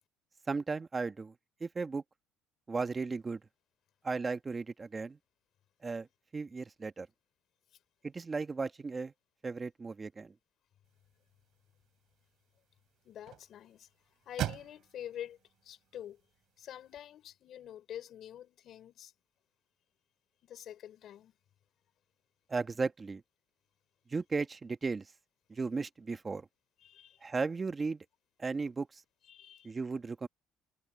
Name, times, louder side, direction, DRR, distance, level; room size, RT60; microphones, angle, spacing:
voice 1, 0.5-1.3 1.6-2.0 2.7-3.4 4.0-5.2 5.8-6.1 6.3-7.1 8.0-9.1 9.4-10.3 22.5-23.2 24.1-25.1 25.5-26.5 27.2-28.0 28.4-29.0 29.6-30.3, right 4 dB, 20° right, 1.3 m, -35 dB
sound 1, 10.8-17.0, right 13 dB, 60° right, 2.8 m, -45 dB
voice 2, 13.0-13.9 14.2-16.2 16.6-19.1 20.4-21.3 26.8-27.2 29.3-29.7, left 10 dB, 50° left, 4.5 m, -47 dB
cardioid pair, 125°, 0 cm